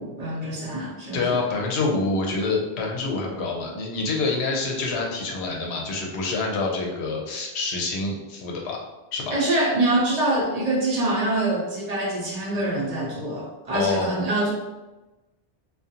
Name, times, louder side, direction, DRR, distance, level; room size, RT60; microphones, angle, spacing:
voice 1, 0.0-1.4 9.3-14.5, right 1 dB, 45° right, -4 dB, 0.7 m, -25 dB
voice 2, 1.1-8.8 9.1-9.3 13.7-14.1, left 3 dB, 90° left, -1 dB, 0.9 m, -26 dB
2.4 x 2.3 x 2.7 m, 1.1 s
omnidirectional pair, 1.1 m